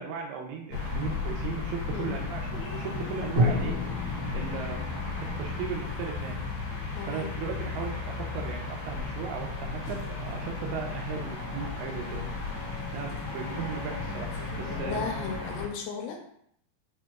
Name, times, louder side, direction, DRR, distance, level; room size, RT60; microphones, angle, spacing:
voice 1, 0.0-3.8 4.3-4.9 5.2-6.4 7.1-12.2 12.9-15.0, right 6 dB, 80° right, 2 dB, 2.5 m, -37 dB
sound 1, 0.7-15.7, left 3 dB, 65° left, 2.1 m, -34 dB
Drum, 3.4-7.4, right 1 dB, 45° right, 2.3 m, -32 dB
voice 2, 6.9-7.3 14.8-16.2, left 6 dB, 85° left, 1 dB, 2.5 m, -35 dB
6.3 x 2.9 x 2.3 m, 0.68 s
omnidirectional pair, 4.8 m